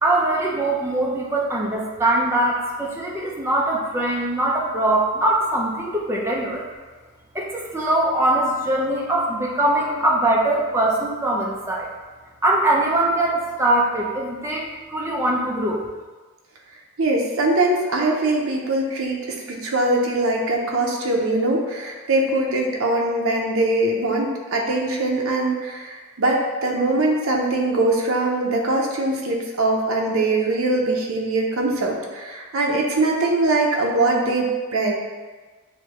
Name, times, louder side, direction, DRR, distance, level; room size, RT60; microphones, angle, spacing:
voice 1, 0.0-6.6 7.3-11.9 12.4-15.9, right 1 dB, 10° right, -3 dB, 0.5 m, -22 dB
voice 2, 17.0-34.5 34.7-35.0, right 2 dB, 70° right, -1 dB, 0.7 m, -22 dB
6.5 x 2.2 x 3.0 m, 1.4 s
head